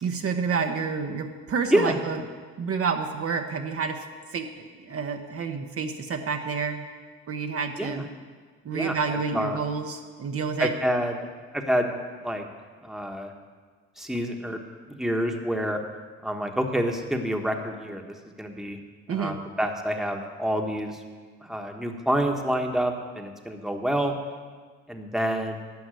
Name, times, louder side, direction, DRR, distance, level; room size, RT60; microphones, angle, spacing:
voice 1, 0.0-2.2 2.6-4.0 4.3-4.5 4.9-6.8 7.3-8.1 8.6-10.7 19.1-19.4, right 5 dB, 50° right, 4 dB, 0.9 m, -29 dB
voice 2, 8.7-9.6 10.6-11.2 11.5-11.9 12.2-12.5 12.8-13.3 14.0-14.6 14.9-15.8 16.2-18.8 19.1-21.0 21.4-24.1 24.9-25.6, equal, ahead, 3 dB, 1.2 m, -27 dB
11.5 x 5.8 x 9.0 m, 1.5 s
cardioid pair, 90°, 30 cm